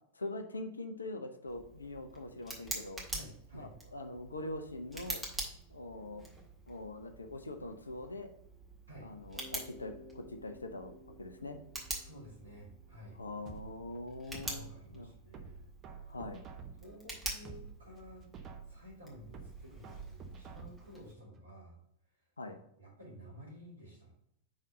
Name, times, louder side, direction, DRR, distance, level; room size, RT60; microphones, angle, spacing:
voice 1, 0.1-3.0 3.5-5.2 5.7-6.2 6.7-8.3 9.0-11.6 13.2-15.1 16.1-16.4 22.4-22.6, left 2 dB, 75° left, 7 dB, 0.6 m, -43 dB
Tick, 1.5-21.1, right 1 dB, 5° right, 1.7 m, -47 dB
voice 2, 3.1-3.7 8.9-9.1 12.0-13.2 14.3-15.7 16.0-16.5 16.8-18.3 18.7-21.8 22.8-24.1, equal, 80° right, -4 dB, 2.6 m, -53 dB
Bass guitar, 9.3-13.4, left 1 dB, 15° left, 2.0 m, -56 dB
sound 1, 13.4-14.9 15.3-16.9 17.3-18.9 19.3-20.9 21.3-21.4, right 5 dB, 30° right, 0.9 m, -49 dB
5.2 x 3.9 x 5.3 m, 0.77 s
figure-of-eight pair, 90°, 0 cm